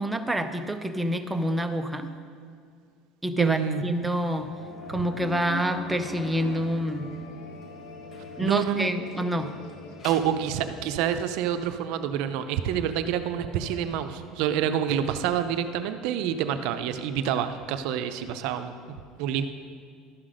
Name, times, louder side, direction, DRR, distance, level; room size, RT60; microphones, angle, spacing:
voice 1, 0.0-2.1 3.2-4.5 4.9-7.1 8.4-9.5, equal, 5° right, 7 dB, 0.6 m, -27 dB
voice 2, 3.4-3.8 8.4-8.9 10.0-19.5, right 9 dB, 65° right, 9 dB, 0.5 m, -27 dB
sound 1, 4.1-7.3 7.6-7.7 8.1-8.6 8.9-10.2, left 4 dB, 25° left, 0.9 m, -42 dB
sound 2, 4.3-11.9 12.1-12.2 13.4-13.8, left 3 dB, 80° left, 1.1 m, -44 dB
12.0 x 5.8 x 5.0 m, 2.1 s
cardioid pair, 140°, 0 cm